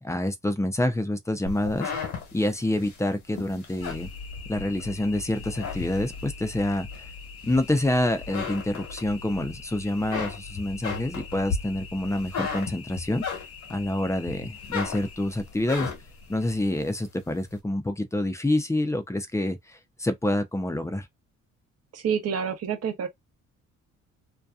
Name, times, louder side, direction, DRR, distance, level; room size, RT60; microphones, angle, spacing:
voice 1, 0.0-1.9 2.3-4.1 4.5-7.1 7.4-13.2 13.7-15.9 16.3-21.1, left 1 dB, 10° left, 0.5 m, -27 dB
sound 1, 1.5-4.9 5.3-6.4 6.9-7.9 8.2-9.5 9.8-13.8 14.2-16.2, left 5 dB, 70° left, 1.2 m, -35 dB
sound 2, 3.8-16.7, left 4 dB, 50° left, 0.8 m, -43 dB
voice 2, 21.9-23.1, right 7 dB, 55° right, 0.8 m, -28 dB
2.7 x 2.2 x 2.3 m
cardioid pair, 90°, 30 cm